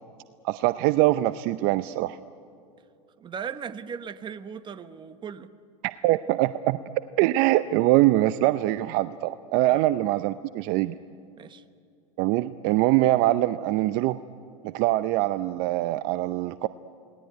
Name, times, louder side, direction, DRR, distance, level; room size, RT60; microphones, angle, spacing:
voice 1, 0.4-2.2 6.0-6.8 7.2-11.0 12.2-14.2 14.6-16.7, right 16 dB, 50° right, 13 dB, 0.7 m, -23 dB
voice 2, 3.2-5.5 9.7-9.9 11.4-11.6, right 7 dB, 25° right, 11 dB, 1.2 m, -37 dB
29.5 x 19.5 x 9.5 m, 2.6 s
hypercardioid pair, 115°, 20 cm